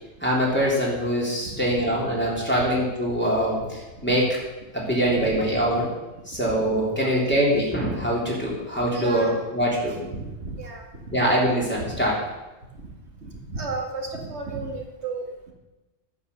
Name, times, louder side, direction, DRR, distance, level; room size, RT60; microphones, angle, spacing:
voice 1, 0.2-4.4 4.7-5.9 6.3-10.0 11.1-12.2, equal, 10° left, -5 dB, 3.4 m, -23 dB
voice 2, 1.4-1.8 2.6-2.7 4.0-4.1 5.2-5.3 5.6-5.7 7.0-7.1 8.9-9.4 9.8-11.2 11.9-12.0 12.7-12.9 13.2-15.5, right 3 dB, 65° right, 0 dB, 2.4 m, -34 dB
11.5 x 8.5 x 6.8 m, 1.1 s
omnidirectional pair, 1.2 m